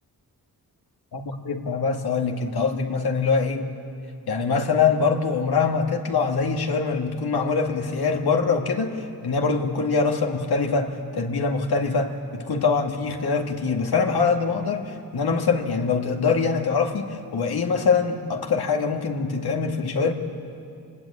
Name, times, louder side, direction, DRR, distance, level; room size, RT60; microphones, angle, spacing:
voice 1, 1.1-3.7 4.3-20.1, left 5 dB, 80° left, 3 dB, 2.1 m, -24 dB
26.0 x 20.5 x 8.7 m, 2.5 s
cardioid pair, 70°, 38 cm